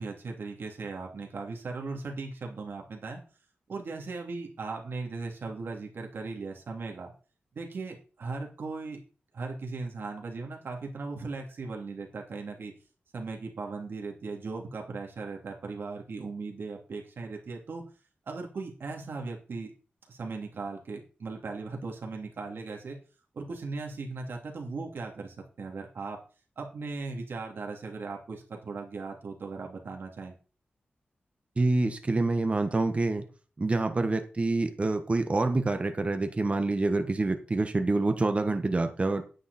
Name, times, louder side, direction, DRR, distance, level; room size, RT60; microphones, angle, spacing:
voice 1, 0.0-3.2 3.7-7.1 7.5-9.0 9.3-12.7 13.1-17.8 18.3-19.7 20.1-23.0 23.3-26.2 26.6-30.3, right 3 dB, 75° right, 1 dB, 2.9 m, -38 dB
voice 2, 31.6-33.3 33.6-39.2, right 2 dB, 35° right, 7 dB, 1.4 m, -27 dB
9.7 x 9.3 x 4.3 m, 0.36 s
wide cardioid pair, 100°, 4 cm